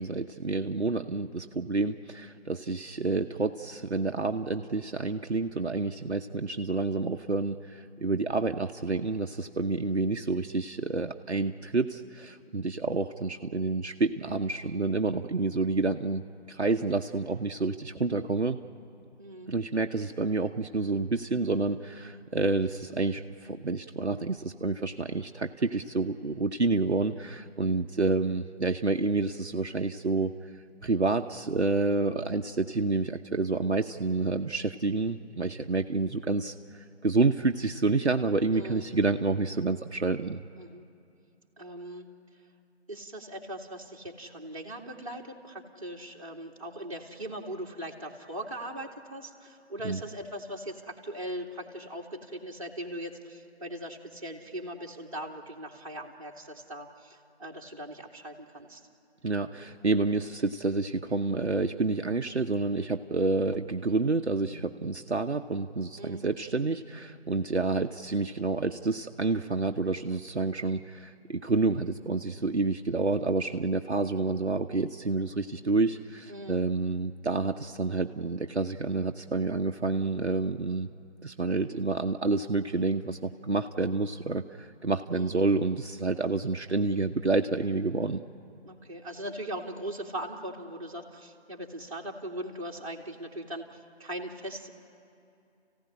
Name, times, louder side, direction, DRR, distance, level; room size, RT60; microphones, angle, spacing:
voice 1, 0.0-16.2 16.5-18.6 19.5-30.4 30.8-36.5 37.0-40.4 49.8-50.0 59.2-80.9 81.2-88.2, right 3 dB, 70° right, 5 dB, 1.0 m, -29 dB
voice 2, 19.2-19.6 38.5-38.9 40.6-40.8 41.6-42.1 42.9-58.9 66.0-66.3 76.3-76.6 85.1-85.4 88.6-94.7, right 1 dB, 30° right, -2 dB, 2.3 m, -40 dB
29.5 x 16.0 x 10.0 m, 2.6 s
figure-of-eight pair, 170°, 35 cm